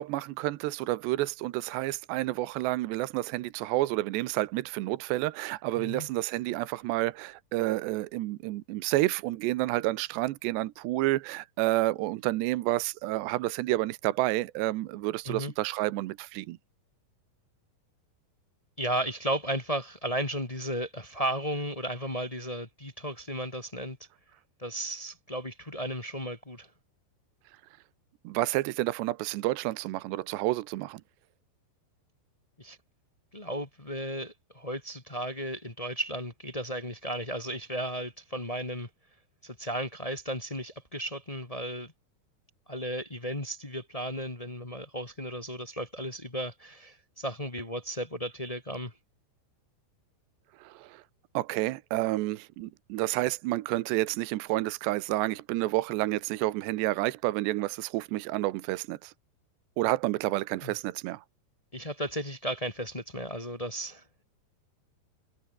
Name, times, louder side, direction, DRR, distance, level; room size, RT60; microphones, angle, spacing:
voice 1, 0.0-16.6 28.2-31.0 50.6-51.0 51.3-59.1 59.8-61.2, right 17 dB, 80° right, 3.1 m, -30 dB
voice 2, 5.8-6.1 15.2-15.5 18.8-24.0 24.6-26.7 32.6-32.8 33.3-38.9 39.4-41.9 42.7-48.9 60.6-60.7 61.7-64.0, right 1 dB, 25° left, 0.7 m, -34 dB
omnidirectional pair, 4.9 m